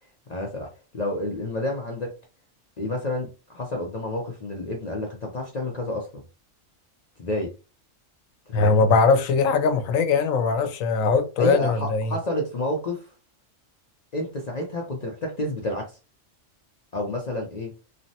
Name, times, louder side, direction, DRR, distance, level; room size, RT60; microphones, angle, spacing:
voice 1, 0.3-2.2 2.8-6.2 7.2-7.5 8.5-8.9 11.4-13.1 14.1-16.0 16.9-17.7, left 1 dB, 45° left, 0.5 m, -30 dB
voice 2, 8.5-12.1, left 4 dB, 85° left, 1.0 m, -21 dB
3.3 x 2.1 x 2.7 m
omnidirectional pair, 1.3 m